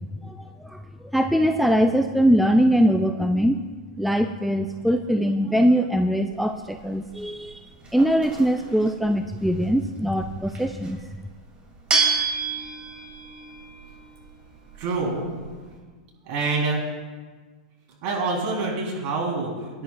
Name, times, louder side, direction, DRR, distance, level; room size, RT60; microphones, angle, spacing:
voice 1, 0.2-0.8 1.1-3.6 4.0-7.6 7.9-11.0, equal, ahead, 6 dB, 0.4 m, -22 dB
sound 1, 6.3-15.8, right 4 dB, 30° right, 2.9 m, -31 dB
voice 2, 14.8-15.3 16.2-16.8 18.0-19.8, right 3 dB, 50° right, -2 dB, 4.0 m, -26 dB
18.5 x 10.0 x 2.5 m, 1.4 s
hypercardioid pair, 115°, 4 cm